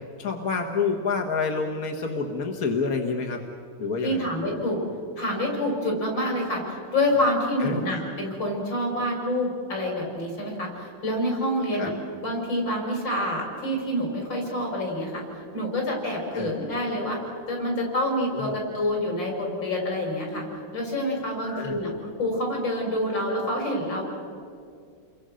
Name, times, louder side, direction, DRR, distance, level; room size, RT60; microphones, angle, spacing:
voice 1, 0.2-3.4 3.8-4.2 7.6-7.8 11.7-11.9 16.3-16.5 18.3-18.5 21.4-21.8, left 4 dB, 50° left, 2 dB, 1.8 m, -28 dB
voice 2, 4.0-4.8 5.2-11.9 12.2-15.2 15.5-17.2 17.5-20.4 20.7-24.0, left 1 dB, 65° left, 0 dB, 6.6 m, -27 dB
29.5 x 23.0 x 6.4 m, 2.3 s
omnidirectional pair, 2.1 m